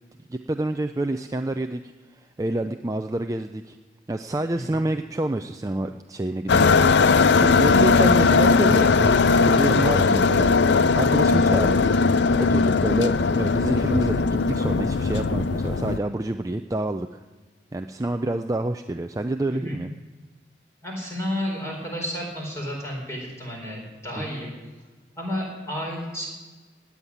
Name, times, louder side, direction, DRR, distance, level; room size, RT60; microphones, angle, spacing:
voice 1, 0.3-1.8 2.1-3.8 4.1-6.8 7.4-10.5 10.9-11.9 12.4-17.2 17.7-19.9 24.2-24.4, right 1 dB, 15° right, 7 dB, 0.4 m, -28 dB
sound 1, 6.5-16.0, left 4 dB, 65° left, 0.5 m, -19 dB
voice 2, 20.8-24.5 25.2-26.3, equal, 15° left, -1 dB, 4.8 m, -31 dB
17.5 x 7.3 x 9.9 m, 1.3 s
head